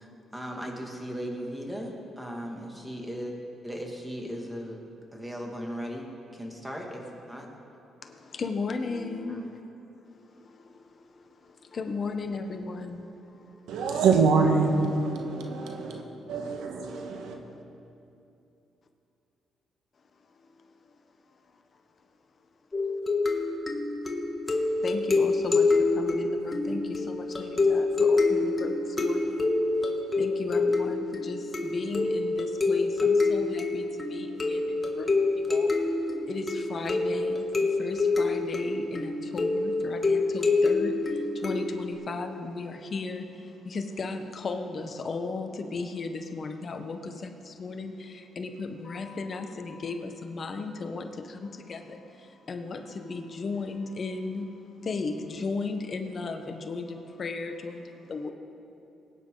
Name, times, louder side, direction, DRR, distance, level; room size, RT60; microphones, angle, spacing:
voice 1, 0.0-3.3 3.6-4.8 5.1-7.5 9.3-9.4, equal, 5° right, 0 dB, 2.4 m, -37 dB
voice 2, 8.0-9.5 10.1-13.6 16.9-17.0 24.8-35.7 36.3-58.3, left 3 dB, 45° left, 6 dB, 1.1 m, -36 dB
voice 3, 13.7-16.0 16.3-17.3, right 4 dB, 85° right, 3 dB, 1.5 m, -25 dB
sound 1, 22.7-41.9, left 3 dB, 25° left, 1.7 m, -26 dB
22.5 x 9.6 x 4.0 m, 2.8 s
cardioid pair, 90°, 0 cm